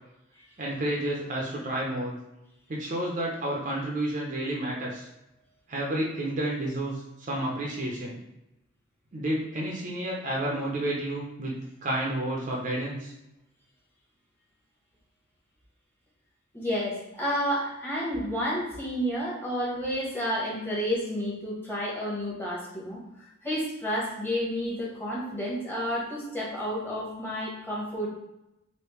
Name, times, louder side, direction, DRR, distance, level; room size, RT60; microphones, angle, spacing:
voice 1, 0.6-2.1 2.7-5.1 5.7-8.2 9.1-11.6 11.8-13.1, right 1 dB, 35° right, -2 dB, 0.5 m, -30 dB
voice 2, 16.5-28.1, equal, 10° left, -6 dB, 1.0 m, -31 dB
3.3 x 2.6 x 3.0 m, 0.90 s
head